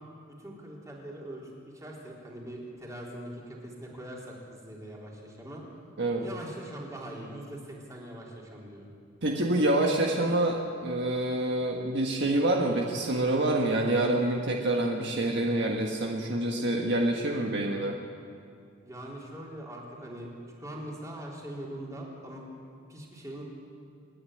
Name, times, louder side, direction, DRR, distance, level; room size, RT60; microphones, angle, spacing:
voice 1, 0.4-5.6 6.2-8.9 18.8-20.3 20.6-22.6 22.9-23.4, right 1 dB, 15° right, -3 dB, 3.8 m, -42 dB
voice 2, 9.2-18.0, right 1 dB, 60° right, 0 dB, 1.6 m, -27 dB
27.0 x 10.0 x 9.8 m, 2.4 s
head